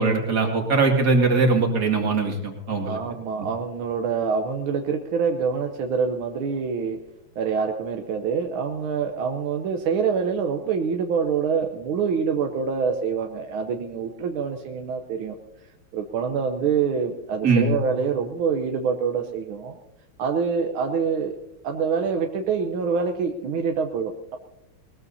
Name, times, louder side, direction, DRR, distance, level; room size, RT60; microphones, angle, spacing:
voice 1, 0.0-3.0 17.4-17.7, right 3 dB, 50° right, 1 dB, 2.8 m, -21 dB
voice 2, 2.8-7.0 7.4-15.4 15.9-19.8 20.2-21.4 21.6-24.4, right 6 dB, 85° right, 4 dB, 1.8 m, -26 dB
20.5 x 20.0 x 2.8 m, 0.90 s
omnidirectional pair, 2.2 m